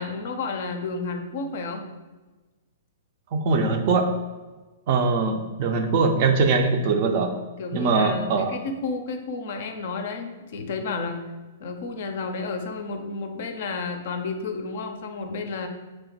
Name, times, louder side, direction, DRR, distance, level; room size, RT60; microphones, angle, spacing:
voice 1, 0.0-1.8 7.6-11.2 11.6-15.7, left 4 dB, 55° left, 6 dB, 0.4 m, -31 dB
voice 2, 3.3-4.1 4.9-7.3 7.7-8.6, right 4 dB, 45° right, 5 dB, 0.4 m, -22 dB
3.1 x 2.1 x 4.1 m, 1.2 s
figure-of-eight pair, 110°, 0 cm